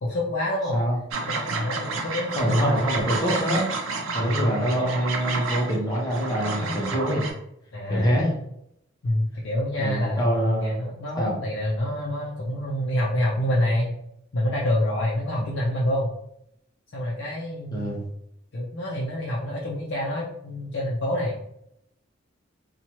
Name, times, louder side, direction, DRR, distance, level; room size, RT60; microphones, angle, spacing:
voice 1, 0.0-0.8 1.2-2.6 4.2-4.5 7.7-8.1 9.0-13.9 14.3-16.1 16.9-17.9 18.5-21.4, left 1 dB, 60° left, -5 dB, 0.5 m, -27 dB
sound 1, 1.1-7.3, right 3 dB, 85° right, 0.5 m, -30 dB
voice 2, 2.3-3.6 4.1-7.3 7.9-8.3 9.8-10.8 11.2-11.4 17.7-18.0, equal, 20° left, -4 dB, 0.8 m, -25 dB
2.8 x 2.3 x 2.9 m, 0.78 s
head